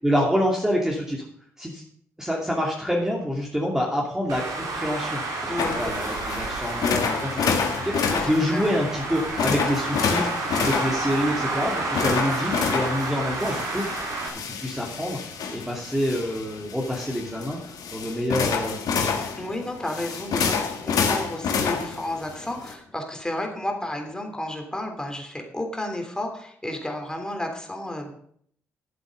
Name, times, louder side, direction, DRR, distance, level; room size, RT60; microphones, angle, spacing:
voice 1, 0.0-1.2 1.6-1.8 2.2-13.9 14.5-15.2 15.5-17.6 17.9-19.2, equal, 5° right, -2 dB, 2.6 m, -27 dB
Traffic noise roadway noise, 4.3-14.3, right 3 dB, 65° right, 3.0 m, -30 dB
voice 2, 5.5-5.8 8.1-8.8 19.4-28.1, left 1 dB, 10° left, 3 dB, 3.3 m, -32 dB
sound 1, 5.6-22.7, left 6 dB, 60° left, 1.6 m, -29 dB
12.5 x 7.9 x 5.4 m, 0.65 s
hypercardioid pair, 45°, 7 cm